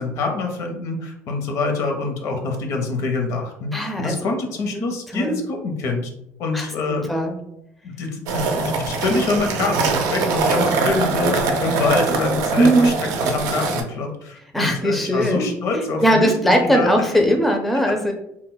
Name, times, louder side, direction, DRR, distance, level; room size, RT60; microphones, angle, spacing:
voice 1, 0.0-6.1 6.4-7.3 7.8-12.9 13.2-16.3 16.7-17.1 17.7-17.9, left 3 dB, 65° left, 3 dB, 0.7 m, -25 dB
voice 2, 3.7-4.2 4.7-4.8 5.1-5.4 6.5-7.4 12.6-12.9 14.5-15.5 16.0-18.1, equal, ahead, 3 dB, 0.4 m, -19 dB
sound 1, 8.3-13.8, right 4 dB, 80° right, 0.4 m, -22 dB
2.1 x 2.1 x 3.8 m, 0.77 s
cardioid pair, 110°, 6 cm